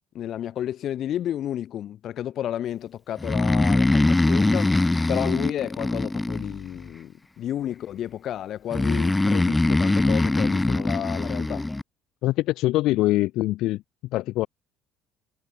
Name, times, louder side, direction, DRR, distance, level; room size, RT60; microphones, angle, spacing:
voice 1, 0.1-4.8 5.1-11.7, left 11 dB, 50° left, 4.7 m, -31 dB
Breathing, 3.2-6.9 8.7-11.8, left 2 dB, 10° left, 1.4 m, -22 dB
voice 2, 12.2-13.8 14.1-14.5, left 17 dB, 70° left, 2.0 m, -23 dB
cardioid pair, 130°, 0 cm